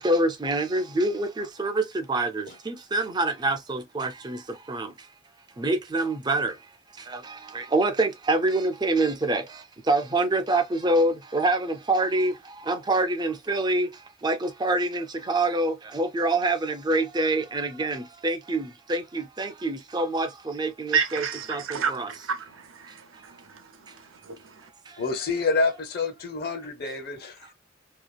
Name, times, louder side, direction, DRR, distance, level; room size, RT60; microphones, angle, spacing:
voice 1, 0.0-5.1 5.6-22.1 22.9-23.0 23.9-24.0 24.9-25.0, right 2 dB, 20° right, 0.4 m, -26 dB
voice 2, 20.9-24.7, right 6 dB, 80° right, 0.6 m, -31 dB
voice 3, 25.0-27.5, left 3 dB, 50° left, 0.7 m, -28 dB
2.9 x 2.4 x 2.3 m
head